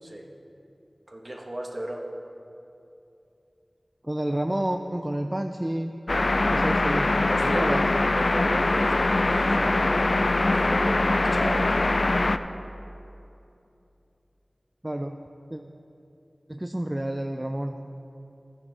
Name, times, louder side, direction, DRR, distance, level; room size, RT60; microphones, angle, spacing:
voice 1, 1.1-2.1 7.3-11.8, right 1 dB, 45° right, 1 dB, 1.3 m, -34 dB
voice 2, 4.0-5.9 6.5-7.8 14.8-15.2 15.5-15.6 16.5-17.7, right 1 dB, 25° right, 5 dB, 0.4 m, -29 dB
sound 1, 6.1-12.4, left 2 dB, 60° left, 0.3 m, -22 dB
13.5 x 9.6 x 3.4 m, 2.7 s
wide cardioid pair, 45°, 0 cm